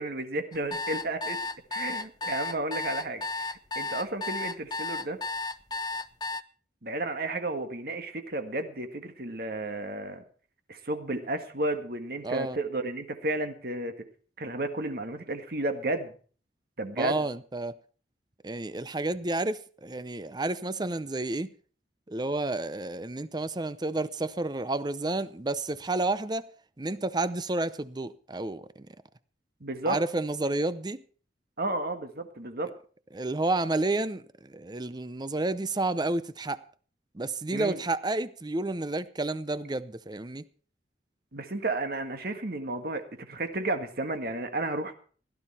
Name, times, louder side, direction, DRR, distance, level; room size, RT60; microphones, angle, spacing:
voice 1, 0.0-1.4 1.7-5.2 6.8-10.2 10.7-13.9 14.4-16.1 16.8-17.2 29.6-30.0 31.6-32.7 37.5-37.8 41.3-44.9, right 2 dB, 55° right, 1.7 m, -32 dB
sound 1, 0.5-6.4, left 3 dB, 20° left, 0.6 m, -33 dB
voice 2, 12.2-12.6 17.0-17.7 18.4-21.5 22.1-26.5 26.8-28.9 29.9-31.0 33.1-36.6 37.1-40.4, right 2 dB, 25° right, 0.6 m, -30 dB
16.5 x 12.5 x 4.3 m
head